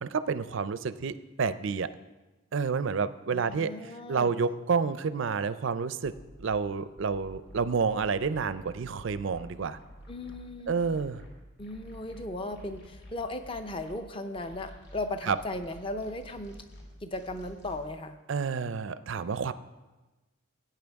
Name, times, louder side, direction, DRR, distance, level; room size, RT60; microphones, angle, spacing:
voice 1, 0.0-1.9 2.5-3.7 4.1-6.1 6.4-9.8 10.7-11.2 15.3-15.4 18.3-19.5, right 5 dB, 55° right, 14 dB, 0.4 m, -29 dB
voice 2, 3.3-4.3 10.1-10.8 11.6-16.6 17.0-18.2, left 2 dB, 25° left, 8 dB, 0.6 m, -37 dB
sound 1, 6.0-6.5 7.0-13.9 14.3-17.8, equal, 50° left, 2.6 m, -50 dB
17.5 x 9.0 x 3.5 m, 1.1 s
head